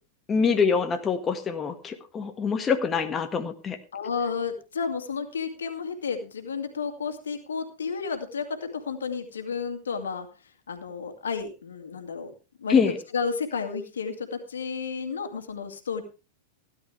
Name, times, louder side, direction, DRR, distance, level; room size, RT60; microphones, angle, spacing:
voice 1, 0.3-3.8 12.7-13.0, left 5 dB, 25° left, 6 dB, 1.7 m, -25 dB
voice 2, 3.9-10.3 10.7-12.3 12.6-12.8 13.1-16.0, left 5 dB, 80° left, 6 dB, 2.3 m, -32 dB
16.5 x 11.5 x 3.4 m, 0.31 s
hypercardioid pair, 100°, 0 cm